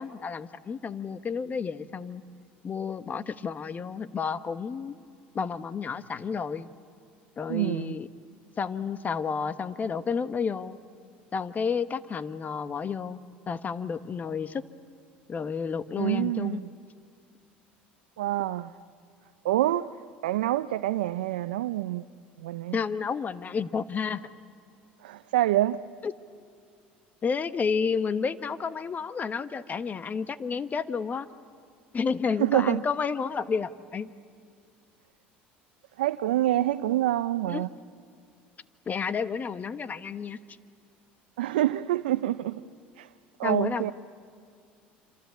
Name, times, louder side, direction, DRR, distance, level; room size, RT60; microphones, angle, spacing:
voice 1, 0.0-2.2 2.6-4.9 5.3-6.7 7.4-8.1 8.6-10.8 11.3-13.2 13.5-14.6 15.3-16.6 22.7-24.2 26.0-26.1 27.2-31.3 31.9-34.1 37.4-37.7 38.9-40.4 43.4-43.9, left 6 dB, 30° left, 1.2 m, -31 dB
voice 2, 7.5-7.9 16.0-16.7 18.2-18.7 19.4-19.9 20.2-22.0 22.4-22.8 25.0-25.8 32.4-32.8 36.0-37.7 41.4-42.6 43.0-43.1 43.4-43.9, right 14 dB, 85° right, 0.6 m, -26 dB
26.5 x 26.5 x 8.3 m
hypercardioid pair, 80°, 5 cm